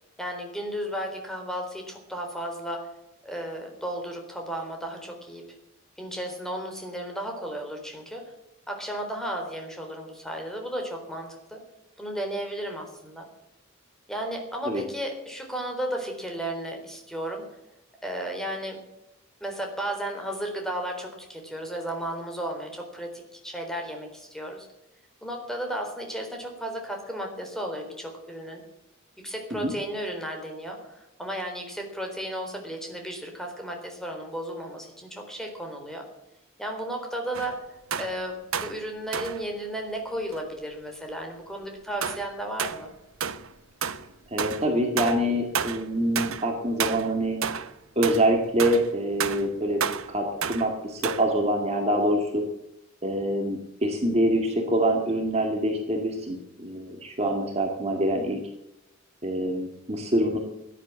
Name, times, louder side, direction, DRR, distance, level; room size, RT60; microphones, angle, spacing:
voice 1, 0.2-2.9 3.2-5.5 6.0-8.3 8.7-11.6 12.0-13.3 14.1-17.5 18.0-18.8 19.4-24.7 25.2-28.6 29.2-36.1 36.6-37.7 38.0-42.9, right 1 dB, ahead, 2 dB, 3.9 m, -34 dB
sound 1, 37.3-37.6 37.9-38.2 38.5-38.8 39.1-39.4 40.3-40.4 42.0-42.3 42.6-42.8 43.2-43.5 43.8-44.1 44.4-44.7 45.0-45.3 45.5-45.8 46.2-46.5 46.8-47.1 47.4-47.7 48.0-48.3 48.6-48.9 49.2-49.5 49.8-50.1 50.4-50.7 51.0-51.3, right 7 dB, 80° right, 1.0 m, -30 dB
voice 2, 44.3-47.4 48.0-49.8 50.1-52.4 53.0-58.4 59.2-60.4, right 1 dB, 30° right, 2 dB, 2.1 m, -25 dB
16.5 x 11.0 x 7.5 m, 0.90 s
head